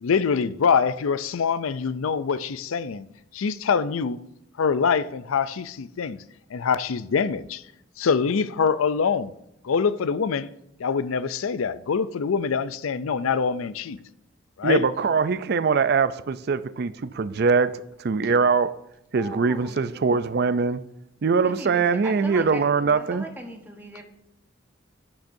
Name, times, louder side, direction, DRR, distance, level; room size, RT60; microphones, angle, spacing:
voice 1, 0.0-3.1 3.3-4.2 4.6-6.2 6.5-7.6 8.0-9.3 9.6-10.5 10.8-14.0 14.6-14.8, left 6 dB, 90° left, 0.5 m, -24 dB
voice 2, 14.6-18.8 19.1-20.8 21.2-23.2, right 5 dB, 50° right, 0.4 m, -22 dB
voice 3, 19.1-20.4 21.4-22.6 23.0-24.0, right 1 dB, 10° right, 1.1 m, -39 dB
11.5 x 9.0 x 2.7 m
head